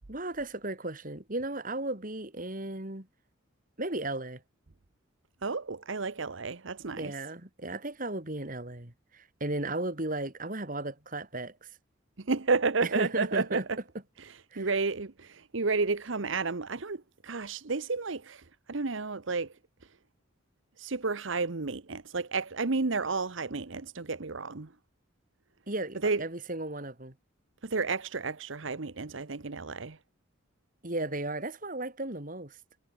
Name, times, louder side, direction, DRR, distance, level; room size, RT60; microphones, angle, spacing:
voice 1, 0.1-3.1 3.8-4.4 7.0-11.7 12.9-13.6 14.5-14.7 25.7-27.1 30.8-32.6, right 2 dB, 40° right, 3.1 m, -35 dB
voice 2, 5.4-7.1 12.2-13.8 14.2-19.5 20.8-24.7 26.0-26.2 27.6-30.0, right 4 dB, 70° right, 1.0 m, -31 dB
head